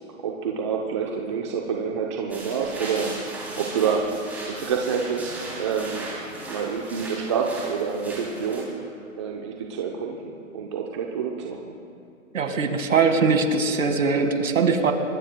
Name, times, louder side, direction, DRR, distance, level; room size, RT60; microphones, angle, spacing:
voice 1, 0.2-3.2 3.6-6.1 6.5-8.7 9.1-11.7, right 6 dB, 20° right, 0 dB, 0.7 m, -28 dB
sound 1, 2.3-8.6, right 2 dB, 5° right, 3.0 m, -37 dB
voice 2, 12.3-14.9, right 4 dB, 65° right, 7 dB, 1.9 m, -21 dB
24.5 x 21.0 x 2.2 m, 2.7 s
hypercardioid pair, 155°, 41 cm